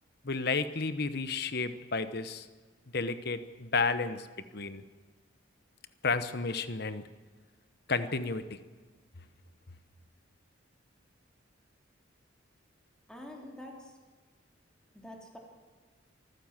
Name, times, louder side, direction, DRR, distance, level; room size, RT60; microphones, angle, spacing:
voice 1, 0.2-2.5 2.9-4.3 4.5-4.8 6.0-7.0 7.9-8.6, left 4 dB, 55° left, 11 dB, 1.2 m, -32 dB
voice 2, 13.1-13.9 14.9-15.4, left 1 dB, 5° left, -1 dB, 3.6 m, -46 dB
25.5 x 15.0 x 7.6 m, 1.4 s
head